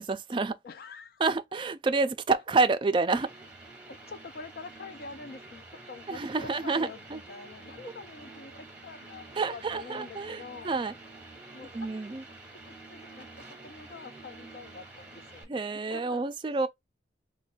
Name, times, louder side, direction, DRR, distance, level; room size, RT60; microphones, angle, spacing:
voice 1, 0.0-0.5 1.2-3.3 6.1-7.2 9.3-10.9 11.7-12.2 15.5-16.7, right 3 dB, 25° right, 0.3 m, -28 dB
voice 2, 0.6-1.2 1.5-1.6 2.3-2.4 3.8-11.0 11.5-11.9 12.5-16.2, left 4 dB, 50° left, 0.4 m, -46 dB
sound 1, 3.1-15.4, right 2 dB, 5° right, 0.9 m, -48 dB
3.2 x 2.2 x 4.3 m
head